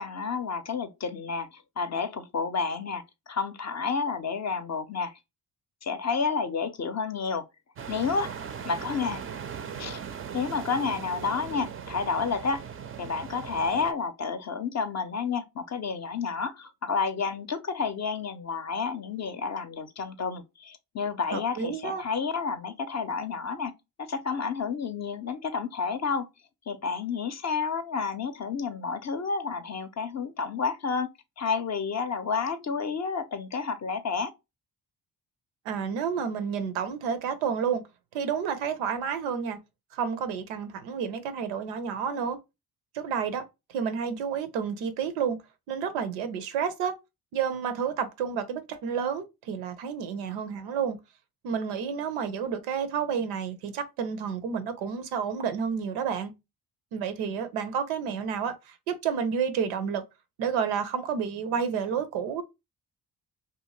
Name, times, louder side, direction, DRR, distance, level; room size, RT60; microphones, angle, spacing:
voice 1, 0.0-5.1 5.8-7.4 7.9-9.2 9.8-10.0 10.3-12.7 13.0-23.7 24.1-26.3 26.7-31.1 31.4-34.3, left 5 dB, 35° left, 0.5 m, -30 dB
sound 1, 7.8-13.9, right 7 dB, 30° right, 0.4 m, -39 dB
voice 2, 21.3-22.0 35.7-37.8 38.1-39.6 39.9-42.4 42.9-43.4 43.7-45.4 45.7-46.9 47.3-51.0 51.4-56.3 56.9-60.0 60.4-62.4, right 7 dB, 90° right, 0.6 m, -30 dB
2.7 x 2.2 x 3.0 m
supercardioid pair, 50°, 47 cm